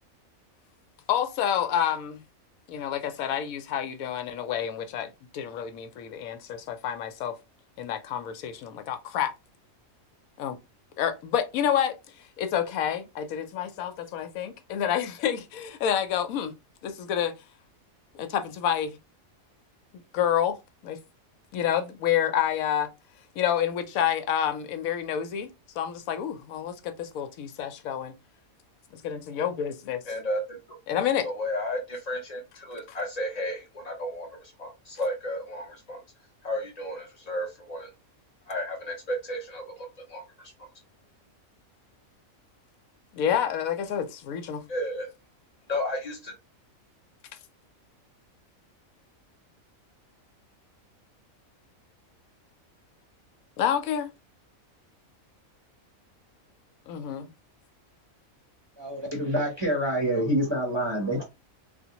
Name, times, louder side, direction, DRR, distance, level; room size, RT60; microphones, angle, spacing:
voice 1, 1.1-2.2 2.7-7.3 7.8-9.3 10.4-10.6 11.0-16.5 16.8-17.3 18.1-19.0 20.1-20.6 20.8-21.0 21.5-22.9 23.4-28.1 28.9-30.0 30.9-31.3 43.1-44.6 53.6-54.1 56.9-57.3, left 9 dB, 80° left, 1.0 m, -28 dB
voice 2, 30.1-30.6 31.2-36.0 36.4-37.9 38.5-40.5 44.7-45.1 45.7-46.3, left 1 dB, 50° left, 0.4 m, -33 dB
voice 3, 58.8-61.2, equal, 25° right, 0.7 m, -27 dB
3.4 x 2.4 x 2.8 m
omnidirectional pair, 1.5 m